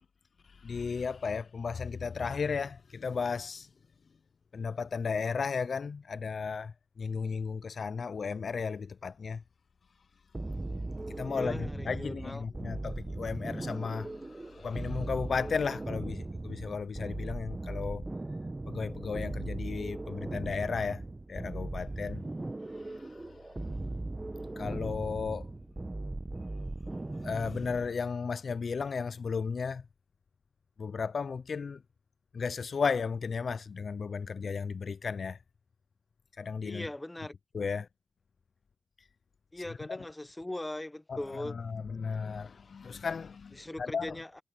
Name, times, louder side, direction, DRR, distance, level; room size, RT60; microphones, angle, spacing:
voice 1, 0.6-3.7 4.5-9.4 11.2-18.0 18.7-21.0 21.3-22.2 22.7-23.2 24.6-25.5 27.2-29.8 30.8-31.8 32.3-35.4 36.4-36.9 37.5-37.9 39.9-40.0 41.1-44.2, left 5 dB, 65° left, 0.3 m, -34 dB
sound 1, 10.3-28.0, right 2 dB, 25° right, 0.8 m, -38 dB
voice 2, 11.3-12.4 36.6-37.3 39.5-41.6 43.6-44.4, left 1 dB, 15° left, 1.1 m, -40 dB
wide cardioid pair, 90°, 0 cm